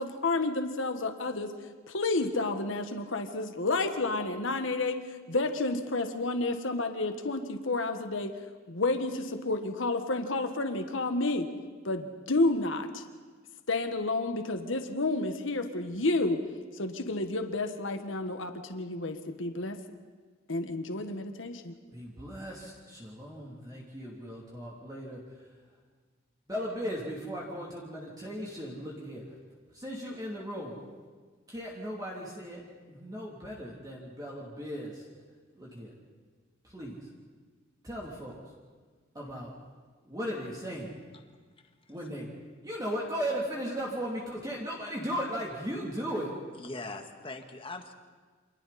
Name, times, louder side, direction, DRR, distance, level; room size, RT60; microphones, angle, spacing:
voice 1, 0.0-1.5 1.9-8.3 8.7-11.5 11.8-13.0 13.7-16.4 16.7-19.8 20.5-21.7, left 2 dB, 75° left, 7 dB, 1.5 m, -30 dB
voice 2, 21.9-25.2 26.5-29.2 29.7-30.8 31.5-35.1 35.5-35.9 36.6-37.1 37.8-38.4 39.1-39.5 40.0-41.0 41.9-42.3 42.6-46.3, equal, 20° right, -4 dB, 3.1 m, -37 dB
voice 3, 41.6-41.9 46.6-47.9, left 2 dB, 25° left, 5 dB, 1.7 m, -42 dB
29.0 x 26.5 x 4.3 m, 1.4 s
head